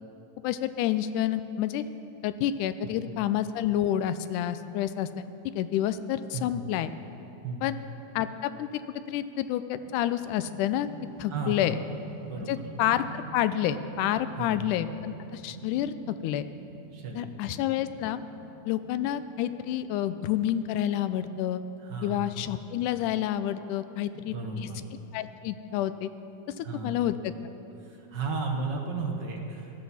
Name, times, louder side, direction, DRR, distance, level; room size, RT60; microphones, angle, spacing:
voice 1, 0.4-1.8 2.2-5.3 5.6-6.9 7.6-7.8 8.2-8.7 9.1-10.9 11.2-11.8 12.5-16.5 17.2-18.2 18.7-21.6 22.0-24.7 25.1-26.1 26.6-27.3, left 11 dB, 90° left, 12 dB, 2.1 m, -29 dB
voice 2, 6.3-6.7 7.4-7.6 11.2-11.8 12.2-12.5 14.4-14.6 16.9-17.3 17.6-17.7 21.8-22.3 24.1-24.9 26.6-27.0 27.8-29.7, right 3 dB, 50° right, 1 dB, 1.4 m, -34 dB
sound 1, 9.8-22.0, right 4 dB, 90° right, 2.4 m, -47 dB
17.0 x 13.0 x 4.2 m, 2.9 s
omnidirectional pair, 3.5 m